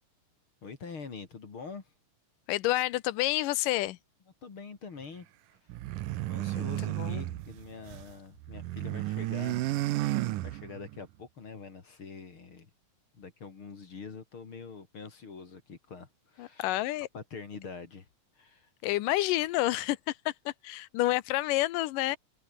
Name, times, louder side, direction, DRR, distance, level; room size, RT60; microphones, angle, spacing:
voice 1, 0.6-1.9 4.4-5.3 6.3-9.7 10.1-12.7 13.1-16.8 17.1-18.1 18.4-18.7, left 5 dB, 40° left, 3.4 m, -45 dB
voice 2, 2.5-4.0 6.6-6.7 7.0-7.3 16.4-17.1 18.8-22.2, left 16 dB, 90° left, 2.5 m, -29 dB
sound 1, 5.7-8.1 8.4-11.0, right 16 dB, 85° right, 2.5 m, -33 dB
omnidirectional pair, 3.7 m